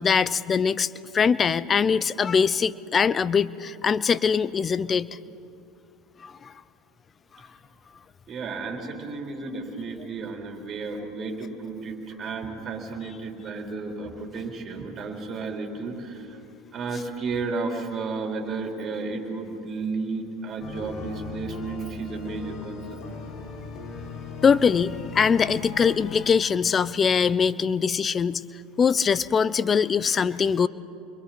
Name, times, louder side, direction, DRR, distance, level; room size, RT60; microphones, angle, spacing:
voice 1, 0.0-5.1 6.2-6.5 24.4-28.4 28.8-30.7, left 6 dB, 30° left, 18 dB, 0.7 m, -22 dB
voice 2, 8.3-16.4 16.7-23.0, right 4 dB, 40° right, 1 dB, 3.9 m, -33 dB
sound 1, 20.6-26.3, left 5 dB, 50° left, 3.2 m, -38 dB
29.5 x 22.5 x 4.3 m, 2.8 s
hypercardioid pair, 90°, 0 cm